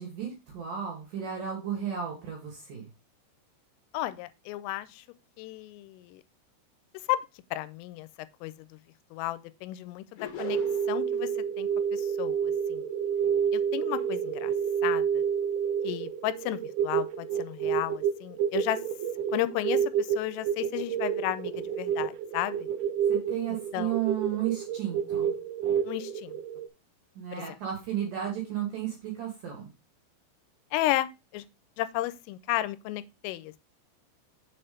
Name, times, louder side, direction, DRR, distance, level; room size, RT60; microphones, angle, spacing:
voice 1, 0.0-2.8 23.1-25.3 27.2-29.7, right 10 dB, 60° right, 2.4 m, -33 dB
voice 2, 3.9-5.0 5.4-6.2 7.1-7.2 7.5-8.1 8.4-8.8 9.1-10.6 10.9-11.3 11.6-12.8 13.5-14.5 14.8-15.2 15.8-18.8 19.3-22.6 23.7-23.9 25.8-26.4 27.3-27.4 30.7-31.4 31.8-33.6, left 15 dB, 90° left, 3.2 m, -33 dB
sound 1, 10.2-11.1, left 7 dB, 55° left, 2.4 m, -40 dB
sound 2, 10.4-26.7, right 8 dB, 85° right, 2.8 m, -29 dB
7.2 x 4.4 x 5.0 m
omnidirectional pair, 5.7 m